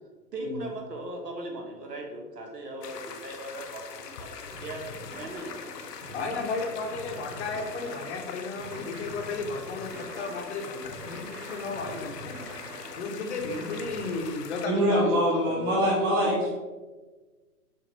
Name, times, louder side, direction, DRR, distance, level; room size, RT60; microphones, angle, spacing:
voice 1, 0.3-5.5 6.1-6.3 11.8-12.1 13.2-13.3, right 2 dB, 90° right, 1 dB, 1.4 m, -39 dB
sound 1, 2.8-14.7, left 6 dB, 90° left, 0.7 m, -42 dB
sound 2, 4.5-14.2, right 2 dB, 60° right, 1.4 m, -44 dB
voice 2, 6.1-12.4 13.0-16.4, left 3 dB, 45° left, 4 dB, 0.7 m, -34 dB
voice 3, 14.6-16.5, equal, 15° right, -3 dB, 0.6 m, -24 dB
6.7 x 2.6 x 3.1 m, 1.3 s
hypercardioid pair, 145°, 47 cm